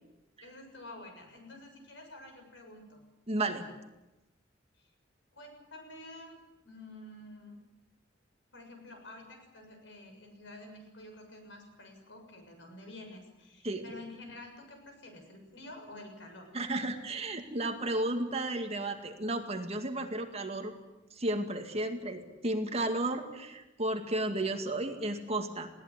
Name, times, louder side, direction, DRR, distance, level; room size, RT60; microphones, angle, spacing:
voice 1, 0.4-3.0 5.3-7.6 8.5-16.5, left 1 dB, 75° left, 4 dB, 6.8 m, -49 dB
voice 2, 3.3-3.7 13.6-13.9 16.5-20.7 21.2-25.7, right 1 dB, 35° right, 5 dB, 2.2 m, -33 dB
20.5 x 17.5 x 9.8 m, 1.0 s
head